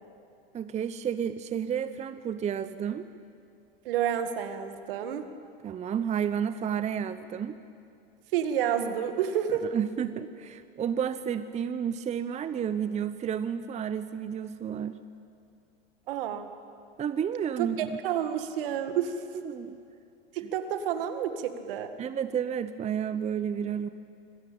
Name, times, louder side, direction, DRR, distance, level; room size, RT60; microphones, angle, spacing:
voice 1, 0.5-3.1 5.6-7.6 9.5-15.0 17.0-18.0 19.4-19.8 22.0-23.9, right 8 dB, 25° right, 12 dB, 0.8 m, -31 dB
voice 2, 3.9-5.2 8.3-9.6 16.1-16.5 17.6-19.1 20.3-21.9, right 9 dB, 65° right, 8 dB, 2.0 m, -29 dB
25.5 x 16.0 x 8.7 m, 2.5 s
hypercardioid pair, 95°, 29 cm